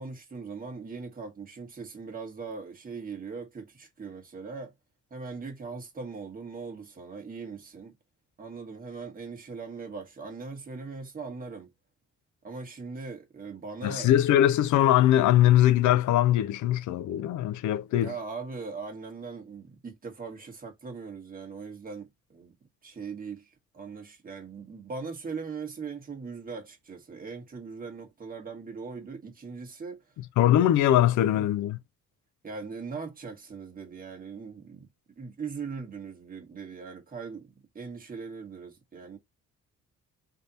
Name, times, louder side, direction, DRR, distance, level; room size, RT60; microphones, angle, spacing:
voice 1, 0.0-4.7 5.1-7.9 8.4-11.7 12.4-14.2 15.5-15.6 17.9-22.5 22.8-30.0 31.2-31.5 32.4-34.9 35.2-39.2, right 4 dB, 30° right, 1.4 m, -40 dB
voice 2, 13.8-18.1 30.4-31.8, left 12 dB, 75° left, 0.5 m, -21 dB
3.3 x 2.9 x 4.0 m
cardioid pair, 90°, 30 cm